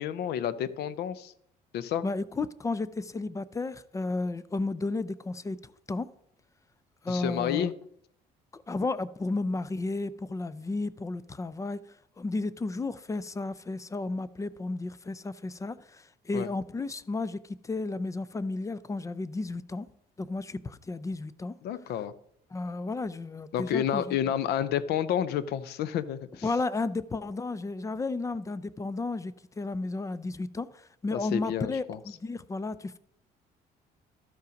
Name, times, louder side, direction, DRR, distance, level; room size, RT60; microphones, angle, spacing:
voice 1, 0.0-1.3 1.7-2.0 7.1-7.7 16.3-16.5 21.6-22.1 23.5-26.4 31.1-32.0, left 10 dB, 75° left, 0.7 m, -30 dB
voice 2, 2.0-6.1 7.0-7.7 8.5-11.8 12.2-19.9 20.2-21.5 22.5-24.2 26.4-33.0, left 3 dB, 20° left, 0.5 m, -33 dB
12.5 x 5.6 x 5.1 m
cardioid pair, 110°, 17 cm